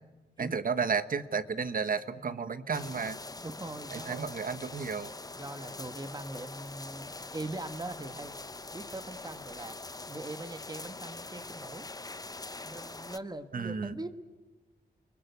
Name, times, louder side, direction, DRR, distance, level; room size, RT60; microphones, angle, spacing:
voice 1, 0.4-3.2 3.9-5.1 13.5-13.9, right 5 dB, 55° right, 12 dB, 1.2 m, -32 dB
sound 1, 2.7-13.2, left 3 dB, 20° left, 0.9 m, -43 dB
voice 2, 3.4-4.2 5.4-8.3 8.7-9.8 10.0-11.9 12.6-14.1, right 2 dB, 25° right, 10 dB, 1.3 m, -41 dB
29.5 x 21.0 x 8.3 m, 1.2 s
wide cardioid pair, 95°, 17 cm